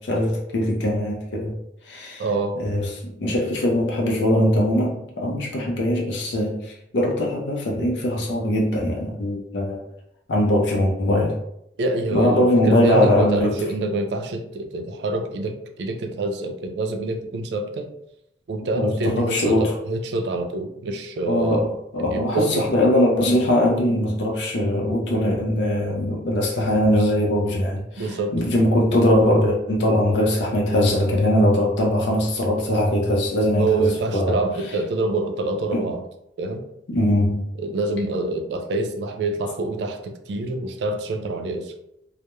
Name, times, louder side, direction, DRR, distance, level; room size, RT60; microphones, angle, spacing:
voice 1, 0.0-1.5 1.9-2.2 2.6-9.8 10.3-11.4 12.1-13.6 18.7-19.7 21.3-34.4 35.7-35.8 36.9-37.5, left 1 dB, 80° left, -2 dB, 0.5 m, -21 dB
voice 2, 2.2-2.6 11.8-17.9 18.5-21.7 22.1-22.7 28.0-28.3 33.6-36.0 36.4-36.7 37.6-41.7, right 2 dB, 70° right, 5 dB, 0.3 m, -26 dB
2.9 x 2.0 x 2.2 m, 0.80 s
head